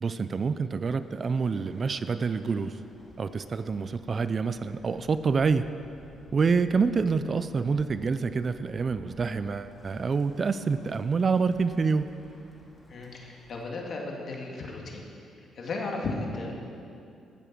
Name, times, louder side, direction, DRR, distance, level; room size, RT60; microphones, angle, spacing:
voice 1, 0.0-2.8 3.2-5.7 6.3-12.1, right 5 dB, 40° right, 12 dB, 0.5 m, -27 dB
Bird, 0.7-13.8, left 1 dB, 10° left, 2.3 m, -55 dB
voice 2, 12.9-16.5, left 3 dB, 55° left, 0 dB, 2.2 m, -35 dB
15.0 x 7.1 x 6.1 m, 2.5 s
cardioid pair, 90°, 0 cm